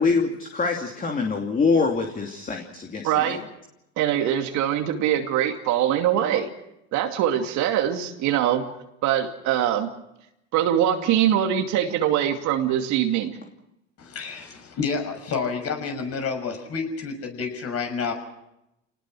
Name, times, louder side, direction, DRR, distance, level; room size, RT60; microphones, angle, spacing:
voice 1, 0.0-3.4, left 4 dB, 25° left, 2 dB, 2.8 m, -24 dB
voice 2, 3.0-3.4 4.0-6.5 6.9-8.7 9.0-9.9 10.5-13.4, right 10 dB, 55° right, 5 dB, 2.6 m, -23 dB
voice 3, 14.0-18.1, left 5 dB, 40° left, 5 dB, 6.4 m, -29 dB
28.0 x 19.5 x 6.4 m, 0.86 s
hypercardioid pair, 90°, 35 cm